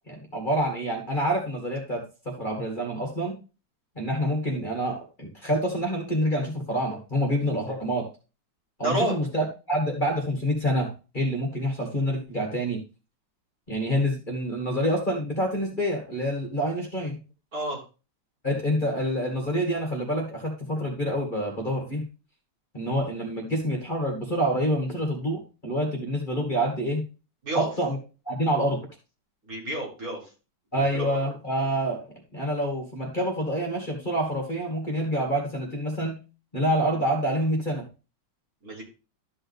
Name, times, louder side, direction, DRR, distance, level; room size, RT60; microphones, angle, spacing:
voice 1, 0.1-2.0 2.4-3.4 4.0-8.1 8.8-12.8 13.7-17.2 18.4-22.0 22.7-27.0 27.5-28.0 28.3-28.8 30.7-36.2 36.5-37.8, equal, 25° left, 0 dB, 2.3 m, -27 dB
voice 2, 8.8-9.2 17.5-17.8 27.4-27.7 29.5-30.2 30.7-31.2 38.6-38.8, right 1 dB, 45° right, -3 dB, 4.1 m, -29 dB
13.0 x 5.6 x 3.5 m, 0.32 s
omnidirectional pair, 2.1 m